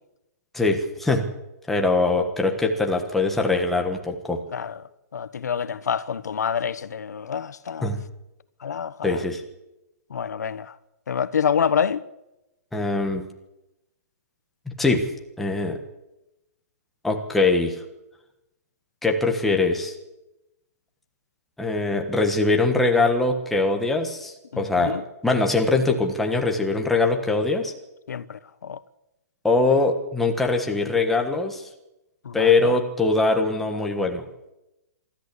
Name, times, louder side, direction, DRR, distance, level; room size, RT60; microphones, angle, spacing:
voice 1, 0.5-1.2 1.7-4.4 7.8-8.0 9.0-9.4 12.7-13.2 14.8-15.1 15.4-15.8 17.0-17.8 19.0-19.9 21.6-25.0 25.2-27.7 29.4-31.6 32.3-34.2, left 3 dB, ahead, 1.3 m, -22 dB
voice 2, 5.1-7.9 8.6-9.2 10.1-10.7 11.1-12.0 24.5-25.0 28.1-28.8 32.2-32.8, left 7 dB, 85° left, 1.1 m, -27 dB
24.0 x 13.5 x 8.4 m
hypercardioid pair, 175°, 9 cm